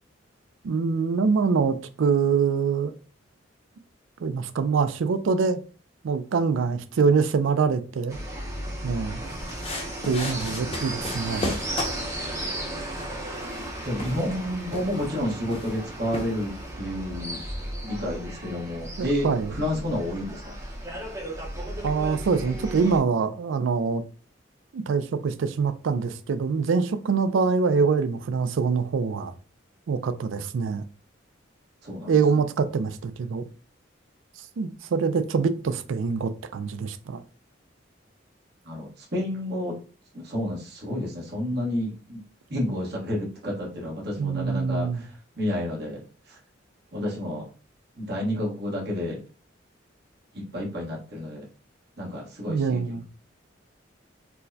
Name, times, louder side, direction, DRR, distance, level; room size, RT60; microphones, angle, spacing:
voice 1, 0.6-2.9 4.2-5.6 6.0-8.2 8.8-9.2 10.0-11.5 19.0-19.5 21.8-24.0 24.7-29.3 29.9-30.8 32.1-33.4 34.6-37.2 44.2-45.0 52.5-53.0, right 5 dB, 75° right, 0.4 m, -24 dB
sound 1, 8.1-23.0, right 1 dB, 15° right, 0.7 m, -35 dB
sound 2, 9.2-16.7, left 1 dB, 30° left, 0.7 m, -37 dB
voice 2, 12.6-13.0 13.8-17.4 17.8-20.5 31.8-32.2 38.6-39.7 40.1-42.2 42.5-46.0 46.3-46.4 46.9-47.5 48.0-49.2 50.3-51.5 52.0-53.0, left 1 dB, 55° right, 1.2 m, -30 dB
4.4 x 2.1 x 2.7 m
head